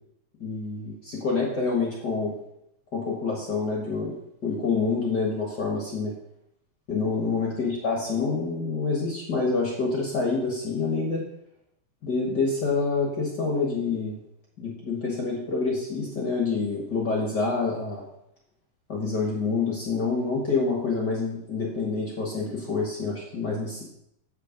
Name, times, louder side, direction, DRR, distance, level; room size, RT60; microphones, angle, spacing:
voice 1, 0.4-2.3 2.9-6.1 6.9-11.2 12.0-14.2 14.6-18.0 18.9-23.8, left 4 dB, 55° left, -2 dB, 1.1 m, -27 dB
8.1 x 6.7 x 5.2 m, 0.78 s
omnidirectional pair, 4.2 m